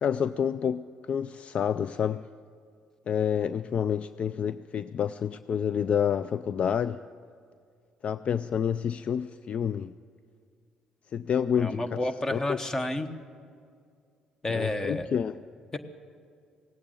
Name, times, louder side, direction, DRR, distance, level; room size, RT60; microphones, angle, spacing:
voice 1, 0.0-2.3 3.1-7.0 8.0-9.9 11.1-12.0 12.3-12.6 14.5-15.4, left 8 dB, 50° left, 14 dB, 0.3 m, -28 dB
voice 2, 11.6-13.1 14.4-15.1 15.7-15.8, left 2 dB, 25° left, 9 dB, 1.2 m, -30 dB
18.0 x 8.7 x 8.9 m, 2.2 s
supercardioid pair, 70°, 3 cm